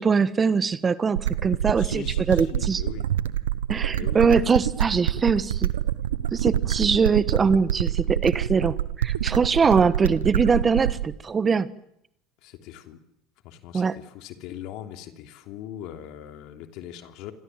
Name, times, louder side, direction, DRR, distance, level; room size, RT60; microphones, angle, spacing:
voice 1, 0.0-2.8 3.7-5.7 6.3-11.7 13.7-14.0, right 5 dB, 30° right, 15 dB, 1.3 m, -22 dB
sound 1, 1.1-11.1, right 11 dB, 80° right, 1.0 m, -26 dB
voice 2, 1.8-3.1 3.9-4.3 5.2-5.4 12.4-13.0 13.4-17.3, left 11 dB, 60° left, 6 dB, 3.0 m, -40 dB
28.0 x 26.0 x 7.6 m, 0.78 s
hypercardioid pair, 70°, 0 cm